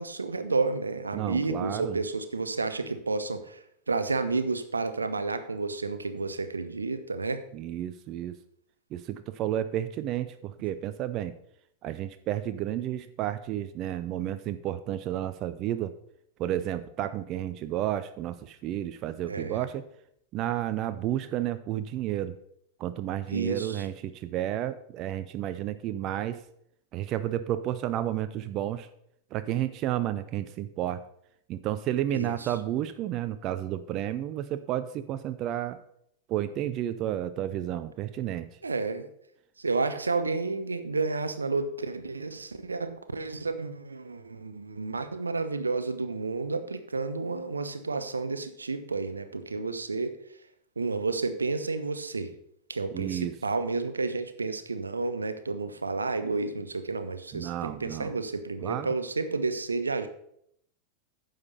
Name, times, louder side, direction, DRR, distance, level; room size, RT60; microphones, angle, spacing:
voice 1, 0.0-3.6 3.9-7.4 19.3-19.7 23.3-23.9 32.1-32.5 38.6-39.1 39.6-50.2 50.8-52.3 52.7-60.1, right 3 dB, 75° right, 11 dB, 0.7 m, -31 dB
voice 2, 1.1-2.0 7.5-8.4 8.9-11.3 11.8-15.9 16.4-19.9 20.3-22.3 22.8-26.4 26.9-28.9 29.3-31.0 31.5-35.8 36.3-38.5 52.9-53.3 57.3-58.1 58.6-58.9, right 12 dB, 35° right, 11 dB, 0.5 m, -31 dB
9.6 x 6.6 x 5.4 m, 0.72 s
figure-of-eight pair, 90°, 0 cm